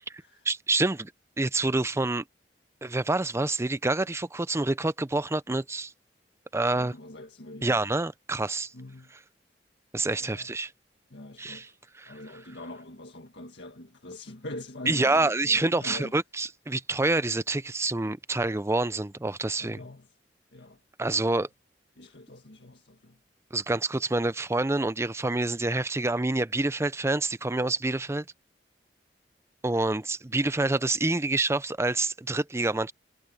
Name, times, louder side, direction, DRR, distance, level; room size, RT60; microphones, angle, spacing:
voice 1, 0.4-1.1 1.4-2.2 2.8-5.9 6.5-6.9 7.6-8.7 9.9-10.7 11.4-11.7 12.0-12.1 14.9-19.8 21.0-21.5 23.5-28.2 29.6-32.9, right 2 dB, 15° right, 0.6 m, -27 dB
voice 2, 6.7-7.8 8.7-9.1 10.1-10.5 11.1-11.7 12.1-16.1 19.6-20.1 20.5-20.8 22.0-23.2, left 1 dB, 80° left, 1.8 m, -43 dB
head